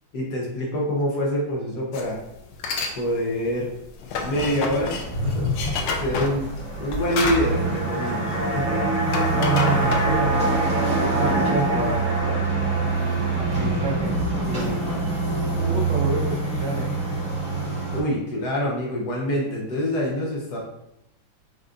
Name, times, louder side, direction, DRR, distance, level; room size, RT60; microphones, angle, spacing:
voice 1, 0.1-2.2 3.0-3.7 4.2-5.5 6.0-6.5 6.8-8.8 17.9-20.6, equal, 60° left, -3 dB, 1.3 m, -26 dB
sound 1, 1.9-2.1 2.5-3.0 3.3-8.6 8.9-10.5, left 4 dB, 85° left, 1.5 m, -29 dB
sound 2, 4.7-18.0, right 3 dB, 5° left, 1.3 m, -26 dB
sound 3, 6.7-17.1 17.4-17.5, right 1 dB, 50° right, 0.5 m, -28 dB
voice 2, 9.3-10.4 11.1-12.1 13.3-14.1 14.4-14.8 15.5-16.9, right 3 dB, 70° right, -2 dB, 1.5 m, -28 dB
4.8 x 4.0 x 2.5 m, 0.84 s
omnidirectional pair, 2.2 m